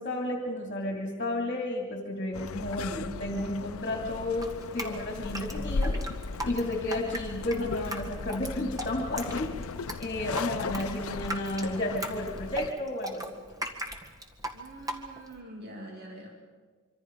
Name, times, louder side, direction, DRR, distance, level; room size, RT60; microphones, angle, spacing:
voice 1, 0.0-6.0 6.4-9.5 10.0-13.3, left 1 dB, 35° left, 2 dB, 2.7 m, -32 dB
sound 1, 2.3-12.7, left 4 dB, 70° left, 0.6 m, -36 dB
Drip, 4.4-15.4, right 1 dB, 15° right, 1.8 m, -38 dB
voice 2, 14.5-16.3, right 1 dB, 50° right, 0 dB, 2.7 m, -44 dB
25.5 x 25.0 x 5.3 m, 1.5 s
head